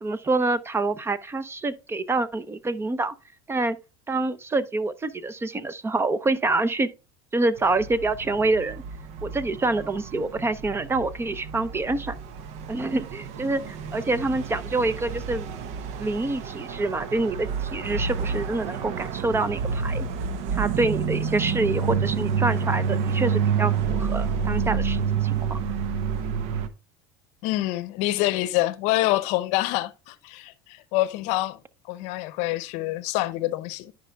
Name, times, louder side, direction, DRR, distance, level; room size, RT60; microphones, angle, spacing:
voice 1, 0.0-3.1 3.5-3.8 4.1-6.9 7.3-8.8 9.2-12.1 12.7-15.5 16.0-20.1 20.5-25.6, right 2 dB, 20° right, 0.7 m, -26 dB
sound 1, 7.6-26.7, right 6 dB, 60° right, 0.9 m, -29 dB
voice 2, 27.4-31.6 31.9-33.9, left 17 dB, 65° left, 0.7 m, -26 dB
13.5 x 5.3 x 2.3 m
hypercardioid pair, 90°, 13 cm